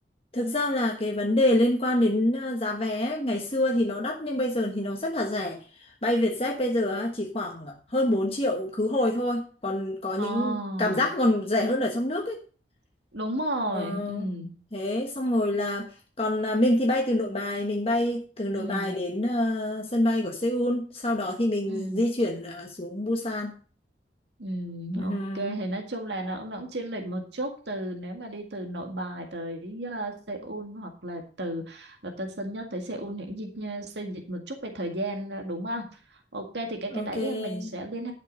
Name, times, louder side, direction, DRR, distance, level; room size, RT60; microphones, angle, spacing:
voice 1, 0.3-12.4 13.7-14.4 14.7-15.9 16.2-23.5 25.0-25.6 36.9-37.7, left 1 dB, 30° left, 1 dB, 1.3 m, -26 dB
voice 2, 10.2-11.1 13.1-14.6 18.5-18.9 21.7-22.0 24.4-35.9 36.1-38.1, right 1 dB, 75° right, 3 dB, 1.9 m, -33 dB
11.5 x 6.5 x 5.2 m, 0.40 s
head